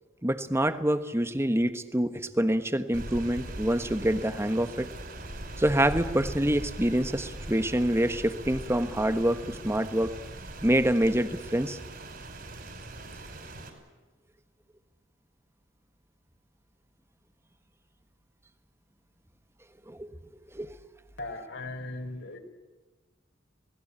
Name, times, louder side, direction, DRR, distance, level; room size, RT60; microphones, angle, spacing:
voice 1, 0.2-4.9 5.6-10.1 10.6-11.8 19.9-20.1 20.5-20.7, right 1 dB, 15° right, 10 dB, 1.3 m, -26 dB
Rain, 2.9-13.7, right 1 dB, 50° right, 5.5 m, -40 dB
voice 2, 21.2-22.4, left 2 dB, 65° left, 4 dB, 4.5 m, -38 dB
27.5 x 19.5 x 8.5 m, 1.3 s
head